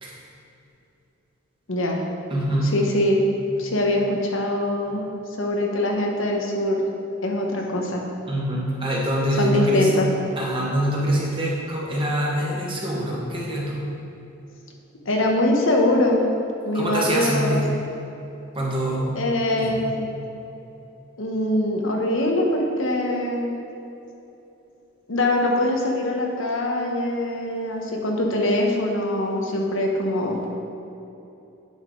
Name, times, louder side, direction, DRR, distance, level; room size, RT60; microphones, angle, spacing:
voice 1, 1.7-2.0 2.6-3.2 3.6-5.1 5.4-6.8 7.2-8.0 9.4-10.1 15.1-16.2 16.6-17.6 19.1-20.1 21.2-23.5 25.1-30.5, left 1 dB, 75° left, 0 dB, 1.0 m, -23 dB
voice 2, 2.3-2.7 8.3-9.9 10.4-13.8 16.7-17.6 18.5-19.2 19.6-19.9, equal, 25° right, -4 dB, 1.4 m, -24 dB
9.0 x 5.6 x 3.8 m, 2.9 s
head